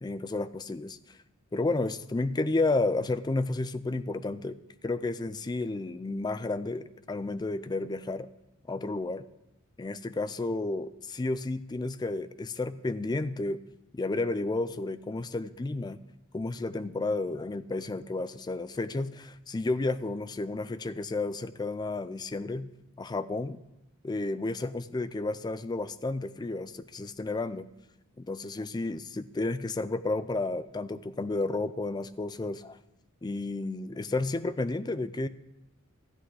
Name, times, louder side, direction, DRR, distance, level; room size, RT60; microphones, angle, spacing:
voice 1, 0.0-1.2 1.5-4.6 4.8-8.3 8.7-9.2 9.8-13.6 13.9-16.0 16.3-22.7 23.0-23.6 24.0-27.7 28.2-32.8 33.2-35.3, left 2 dB, 20° left, 14 dB, 0.3 m, -32 dB
12.5 x 8.4 x 4.8 m, 0.92 s
head